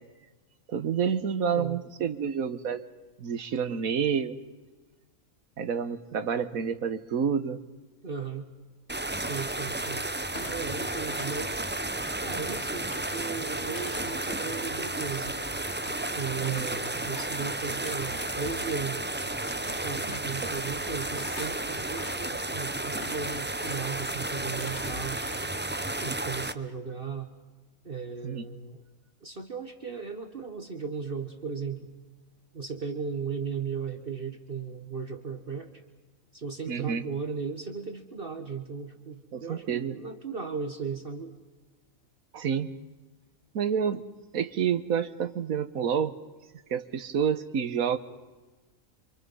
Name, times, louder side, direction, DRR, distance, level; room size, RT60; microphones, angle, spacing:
voice 1, 0.7-2.9 3.2-4.4 5.6-7.6 16.4-16.7 20.1-20.5 28.2-28.4 36.7-37.0 39.3-40.0 42.3-42.7 43.5-44.1 44.3-46.1 46.7-48.0, right 7 dB, 85° right, 12 dB, 1.6 m, -29 dB
voice 2, 8.0-8.5 9.1-10.1 10.5-11.7 12.2-15.4 16.1-19.1 19.8-25.2 26.0-27.3 27.9-28.8 29.2-31.9 32.5-35.8 36.3-41.3, right 5 dB, 40° right, 6 dB, 1.6 m, -36 dB
sound 1, 8.9-26.5, right 2 dB, 15° right, 0.4 m, -33 dB
Thump thud, 10.3-12.0 12.5-18.8 19.2-20.8 21.2-22.4 22.8-23.9 24.3-25.5 25.8-26.1, left 2 dB, 55° left, 2.6 m, -46 dB
28.0 x 27.0 x 5.6 m, 1.3 s
omnidirectional pair, 1.4 m